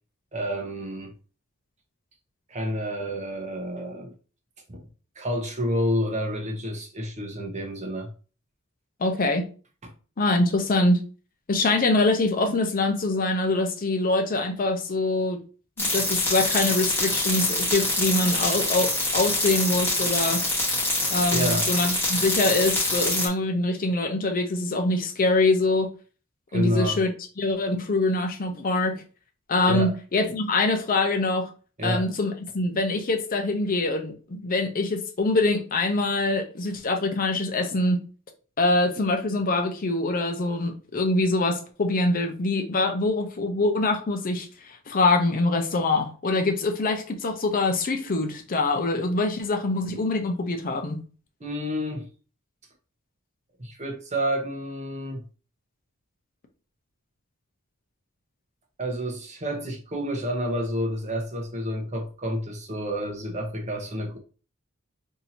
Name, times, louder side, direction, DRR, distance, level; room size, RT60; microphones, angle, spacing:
voice 1, 0.3-1.1 2.5-4.1 4.7-4.8 5.2-8.1 9.8-9.9 21.3-21.7 26.5-27.0 29.6-30.0 31.8-32.1 51.4-52.1 53.6-55.2 58.8-64.2, equal, 35° right, 0.8 m, -29 dB
voice 2, 9.0-9.5 10.2-11.0 11.5-15.4 15.8-20.4 21.1-25.9 26.5-27.1 27.4-29.0 29.5-31.5 31.8-38.0 38.6-51.0, left 2 dB, 40° left, 0.6 m, -24 dB
sound 1, 15.8-23.3, left 1 dB, 10° left, 1.1 m, -25 dB
2.8 x 2.7 x 4.2 m
head